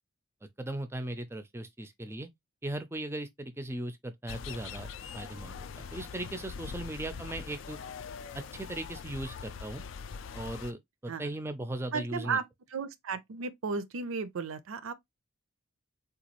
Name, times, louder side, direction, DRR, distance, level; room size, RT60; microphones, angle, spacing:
voice 1, 0.6-2.3 2.6-4.9 5.1-7.8 8.3-9.8 10.3-12.4, right 1 dB, 10° right, 0.4 m, -38 dB
sound 1, 4.3-10.7, left 6 dB, 70° left, 0.3 m, -42 dB
voice 2, 11.9-12.5 12.7-14.9, right 5 dB, 85° right, 0.5 m, -34 dB
3.9 x 2.3 x 2.9 m
head